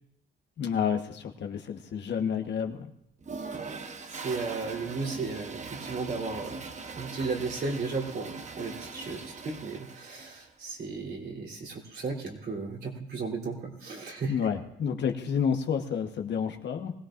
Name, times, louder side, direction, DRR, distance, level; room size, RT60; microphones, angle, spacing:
voice 1, 0.6-2.9 14.3-16.9, left 7 dB, 60° left, 4 dB, 1.3 m, -30 dB
Toilet flush, 3.2-10.5, right 4 dB, 35° right, 1.0 m, -41 dB
voice 2, 3.9-6.6 7.0-14.4, right 4 dB, 55° right, -1 dB, 3.3 m, -35 dB
20.5 x 16.5 x 2.6 m, 0.74 s
cardioid pair, 90°, 20 cm